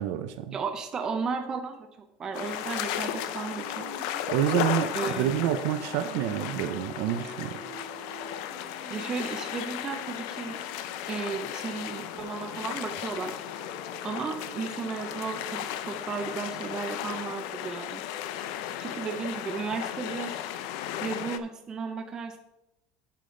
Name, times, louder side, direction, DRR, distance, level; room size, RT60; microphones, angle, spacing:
voice 1, 0.0-0.5 4.3-7.6, right 11 dB, 65° right, 9 dB, 0.6 m, -28 dB
voice 2, 0.5-1.9 2.2-3.9 4.9-5.3 8.9-10.6 11.1-13.6 14.0-18.0 18.8-20.6 21.0-22.4, right 5 dB, 25° right, 4 dB, 0.7 m, -34 dB
sound 1, 2.3-21.4, left 11 dB, 70° left, 0.6 m, -35 dB
Female singing, 2.4-11.2 13.4-17.7, right 6 dB, 45° right, 1.2 m, -49 dB
8.5 x 7.5 x 3.8 m, 0.88 s
cardioid pair, 165°, 3 cm